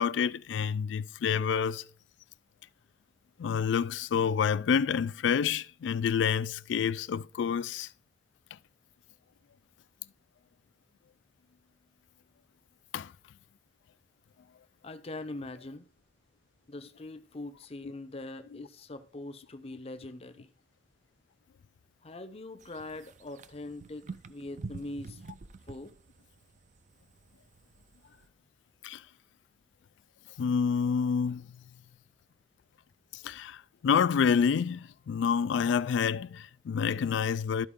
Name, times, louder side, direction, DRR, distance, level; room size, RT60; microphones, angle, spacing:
voice 1, 0.0-1.8 3.4-7.9 12.9-13.1 17.8-17.9 28.8-29.0 30.4-31.6 33.1-37.7, left 7 dB, 75° left, 0.3 m, -28 dB
voice 2, 14.8-15.9 16.7-20.5 22.0-25.2 25.7-26.0, left 2 dB, 35° left, 0.6 m, -42 dB
sound 1, 22.6-28.3, right 3 dB, 40° right, 0.4 m, -47 dB
12.5 x 4.5 x 3.6 m
head